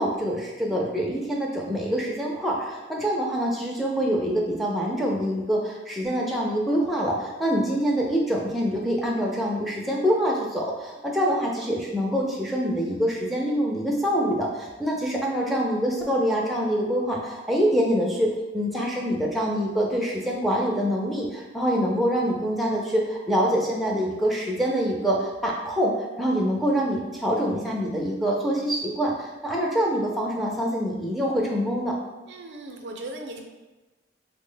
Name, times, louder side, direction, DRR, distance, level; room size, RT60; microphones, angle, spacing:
voice 1, 0.0-32.0, equal, ahead, -3 dB, 0.4 m, -25 dB
voice 2, 32.3-33.4, right 2 dB, 70° right, 3 dB, 0.4 m, -37 dB
3.2 x 2.0 x 3.7 m, 1.1 s
head